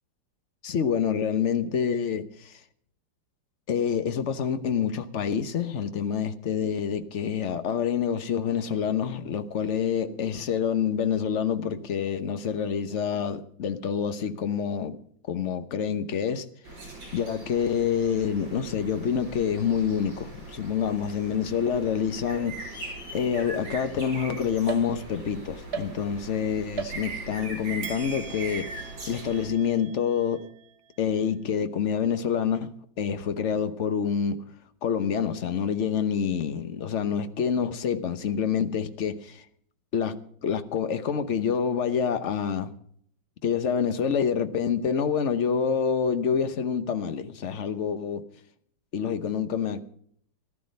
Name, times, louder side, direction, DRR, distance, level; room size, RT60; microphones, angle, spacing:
voice 1, 0.6-2.6 3.7-15.0 15.3-16.5 17.1-30.5 31.0-34.4 34.8-39.4 39.9-42.7 43.4-48.2 48.9-49.8, left 7 dB, 50° left, 1.0 m, -27 dB
sound 1, 16.6-29.5, right 3 dB, 75° right, 6.1 m, -40 dB
sound 2, 24.7-25.3 25.7-26.4 26.8-27.4 27.8-31.3, right 6 dB, 40° right, 1.2 m, -40 dB
14.5 x 13.0 x 5.2 m
omnidirectional pair, 2.0 m